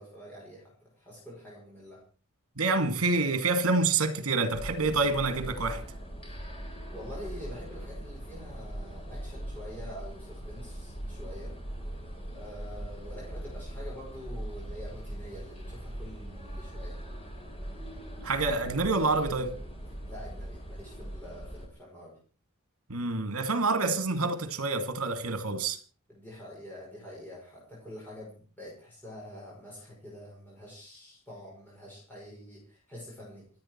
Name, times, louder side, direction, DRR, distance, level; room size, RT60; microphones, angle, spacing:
voice 1, 0.0-2.0 6.2-6.4 6.9-11.6 12.3-17.0 20.1-22.2 26.1-33.5, equal, 10° left, 5.7 m, -46 dB
voice 2, 2.6-5.8 18.2-19.5 22.9-25.8, right 3 dB, 75° right, 2.4 m, -27 dB
sound 1, 4.5-21.7, right 1 dB, 25° left, 4.0 m, -40 dB
27.5 x 9.3 x 4.5 m
head